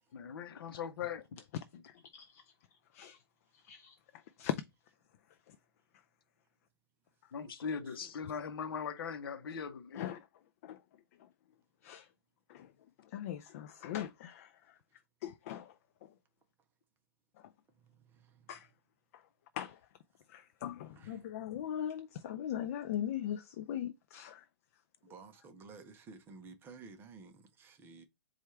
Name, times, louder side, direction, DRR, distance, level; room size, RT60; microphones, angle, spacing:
voice 1, 0.1-1.2 7.3-10.0, left 6 dB, 60° left, 0.8 m, -40 dB
voice 2, 1.5-2.4 2.9-3.2 3.5-4.6 5.5-5.6 8.2-8.3 9.9-10.2 10.6-10.8 11.2-11.3 11.8-12.1 12.5-12.7 13.0-14.8 15.2-15.8 16.0-16.1 17.4-17.5 18.5-18.7 19.1-19.2 19.5-19.8 20.3-24.5, left 10 dB, 40° left, 0.3 m, -40 dB
voice 3, 7.4-8.1 17.7-18.6 20.9-21.3 25.0-28.0, right 4 dB, 15° right, 0.6 m, -54 dB
4.5 x 2.4 x 4.3 m
hypercardioid pair, 145°, 13 cm